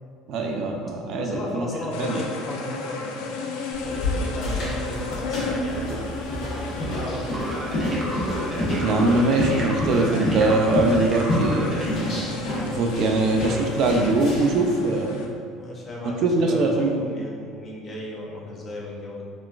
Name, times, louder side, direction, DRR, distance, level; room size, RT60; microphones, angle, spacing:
voice 1, 0.3-1.6 2.0-2.2 8.8-11.9 12.7-15.3 16.0-17.0, right 2 dB, 60° right, 2 dB, 0.3 m, -22 dB
voice 2, 1.1-3.5 3.8-5.9 6.4-7.4 15.5-19.3, left 1 dB, 35° left, -3 dB, 0.6 m, -35 dB
sound 1, 1.9-15.3, left 3 dB, 90° left, 0.3 m, -34 dB
sound 2, 3.7-14.6, left 1 dB, 65° left, 1.1 m, -28 dB
sound 3, 7.3-11.9, right 1 dB, 25° right, 0.6 m, -34 dB
3.7 x 2.3 x 2.3 m, 2.1 s
cardioid pair, 115°, 0 cm